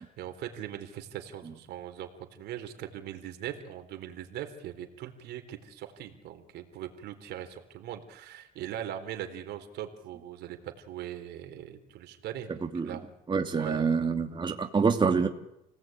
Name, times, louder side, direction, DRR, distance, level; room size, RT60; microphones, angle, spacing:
voice 1, 0.0-13.0 13.5-13.9, right 11 dB, 80° right, 6 dB, 3.9 m, -40 dB
voice 2, 13.3-15.3, right 5 dB, 30° right, 3 dB, 2.7 m, -26 dB
29.5 x 18.5 x 9.2 m, 0.81 s
cardioid pair, 110°, 17 cm